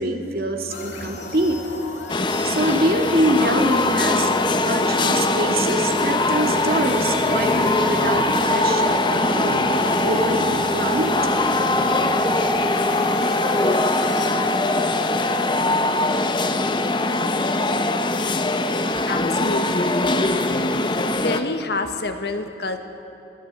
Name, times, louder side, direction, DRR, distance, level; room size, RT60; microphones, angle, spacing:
voice 1, 0.0-1.6 2.4-4.3 4.6-9.7 10.0-11.1, right 1 dB, 55° right, 3 dB, 2.3 m, -24 dB
sound 1, 0.7-14.3, left 2 dB, 85° left, 3.0 m, -35 dB
sound 2, 1.2-19.0, equal, 5° left, 2.3 m, -29 dB
sound 3, 2.1-21.4, left 2 dB, 25° left, 0.9 m, -22 dB
voice 2, 19.1-19.9 21.1-22.8, left 2 dB, 65° left, 6 dB, 1.6 m, -27 dB
23.5 x 16.5 x 8.3 m, 2.9 s
head